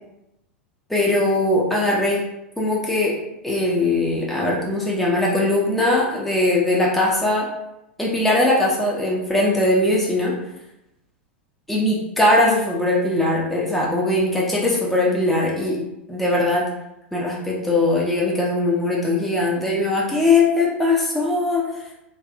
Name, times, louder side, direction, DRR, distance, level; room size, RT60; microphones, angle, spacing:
voice 1, 0.9-2.2 2.6-3.1 3.4-7.5 8.0-10.3 11.7-15.8 16.1-16.7 17.1-21.6, left 2 dB, 5° left, -4 dB, 0.6 m, -20 dB
3.5 x 2.5 x 2.4 m, 0.88 s
figure-of-eight pair, 90°, 6 cm